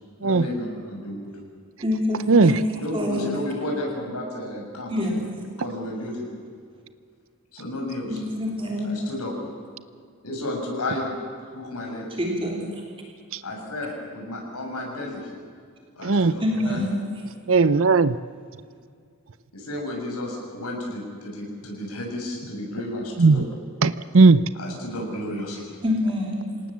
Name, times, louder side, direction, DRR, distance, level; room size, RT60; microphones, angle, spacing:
voice 1, 0.2-1.3 2.8-5.2 5.6-6.3 7.5-8.2 8.8-9.3 10.2-11.1 11.5-12.1 13.4-15.3 15.9-16.8 19.5-23.4 24.5-25.8, left 1 dB, 85° left, 0 dB, 7.1 m, -32 dB
voice 2, 1.8-3.3 4.9-5.3 8.1-9.0 12.2-12.8 16.4-17.0 25.8-26.6, left 1 dB, 25° right, 0 dB, 3.1 m, -26 dB
voice 3, 16.0-16.3 17.5-18.1 23.2-23.4 23.8-24.4, right 4 dB, 60° right, 15 dB, 0.6 m, -16 dB
27.0 x 18.5 x 7.5 m, 2.2 s
head